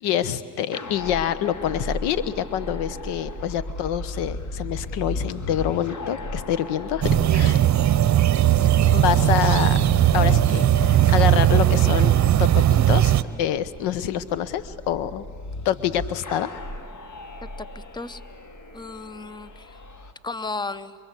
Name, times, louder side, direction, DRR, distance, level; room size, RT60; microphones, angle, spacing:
voice 1, 0.0-7.6 8.9-9.8 10.1-15.2 15.6-16.5, left 10 dB, 80° left, 17 dB, 1.1 m, -26 dB
sound 1, 0.7-20.1, left 1 dB, 45° left, 2.4 m, -35 dB
sound 2, 7.0-13.2, right 12 dB, 45° right, 0.9 m, -18 dB
voice 2, 17.6-18.2 18.7-19.8 20.2-21.0, left 3 dB, 10° left, 17 dB, 0.9 m, -34 dB
27.0 x 24.0 x 8.3 m, 2.2 s
supercardioid pair, 75°, 40 cm